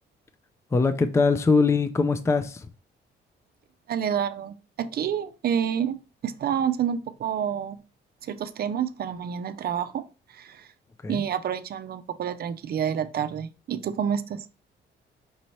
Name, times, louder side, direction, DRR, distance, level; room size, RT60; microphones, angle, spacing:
voice 1, 0.7-2.7 11.0-11.2, left 4 dB, 15° left, 0.4 m, -22 dB
voice 2, 3.9-6.0 6.2-7.8 8.2-10.7 11.1-14.5, right 8 dB, 50° right, 0.5 m, -28 dB
5.3 x 2.8 x 3.1 m
cardioid pair, 90°, 20 cm